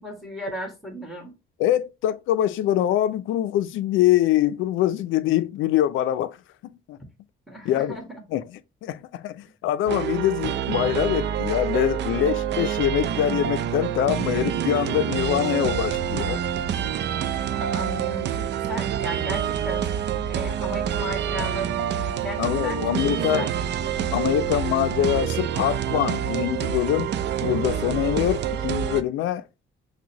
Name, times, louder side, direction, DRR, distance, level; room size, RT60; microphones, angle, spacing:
voice 1, 0.0-1.3 7.5-8.2 17.5-22.8 23.3-23.5, equal, ahead, 1.7 m, -35 dB
voice 2, 1.6-6.4 6.6-7.0 7.6-8.0 8.3-16.4 22.4-23.5 24.1-27.1 27.4-29.4, left 12 dB, 85° left, 0.4 m, -24 dB
sound 1, 9.9-29.0, right 9 dB, 60° right, 0.4 m, -27 dB
6.1 x 2.2 x 2.8 m
cardioid pair, 90°, 20 cm